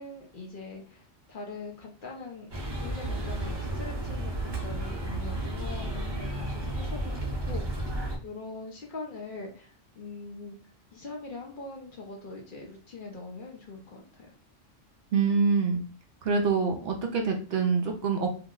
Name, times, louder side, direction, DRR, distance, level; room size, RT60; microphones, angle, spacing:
voice 1, 0.0-2.5 2.8-7.1 7.5-7.8 8.2-10.6 10.9-14.3, left 3 dB, 50° left, 0 dB, 0.7 m, -42 dB
sound 1, 2.5-8.2, right 1 dB, 25° right, 0.6 m, -32 dB
voice 2, 15.1-15.8 16.2-18.3, right 5 dB, 65° right, 3 dB, 0.7 m, -25 dB
2.7 x 2.1 x 3.6 m, 0.39 s
omnidirectional pair, 1.3 m